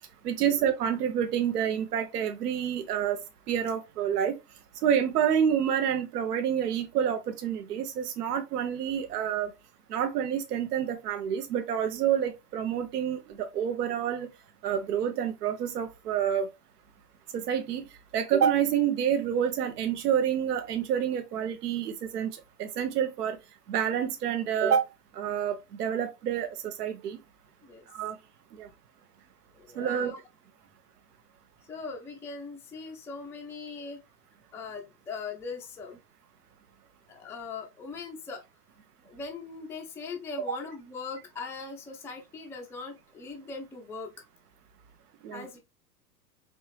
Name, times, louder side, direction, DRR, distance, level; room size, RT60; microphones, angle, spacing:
voice 1, 0.2-3.2 3.5-4.3 4.8-9.5 9.9-14.3 14.6-16.5 17.3-17.8 18.1-23.4 23.7-24.8 25.1-27.2 27.9-28.2 28.6-28.7 29.8-30.1 45.2-45.4, right 9 dB, 70° right, 0.7 m, -28 dB
voice 2, 29.5-30.2 31.6-34.0 34.5-36.0 37.1-38.4 39.0-44.1 45.3-45.6, left 4 dB, 5° left, 0.4 m, -40 dB
4.3 x 3.1 x 3.0 m
figure-of-eight pair, 100°, 49 cm